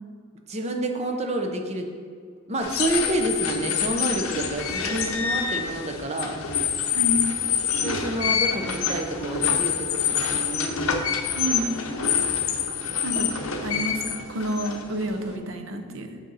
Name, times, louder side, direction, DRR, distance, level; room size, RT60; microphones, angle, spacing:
voice 1, 0.5-1.9 2.5-6.4 7.8-10.8 13.1-13.2 13.6-13.7, right 1 dB, 30° right, 3 dB, 0.7 m, -29 dB
sound 1, 2.6-15.3, left 7 dB, 75° left, 0.7 m, -26 dB
voice 2, 6.9-7.3 11.3-11.7 13.0-13.3 13.6-16.2, equal, 65° right, 5 dB, 0.8 m, -29 dB
6.5 x 6.4 x 4.1 m, 2.1 s
head